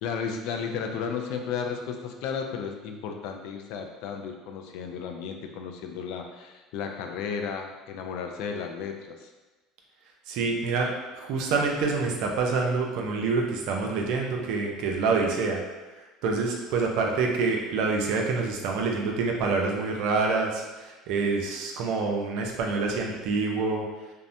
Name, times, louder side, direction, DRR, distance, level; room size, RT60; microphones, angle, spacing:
voice 1, 0.0-9.3, left 6 dB, 70° left, 4 dB, 0.3 m, -34 dB
voice 2, 10.3-15.6 16.0-23.8, right 4 dB, 70° right, 1 dB, 0.4 m, -27 dB
2.7 x 2.0 x 2.5 m, 1.2 s
supercardioid pair, 85°, 0 cm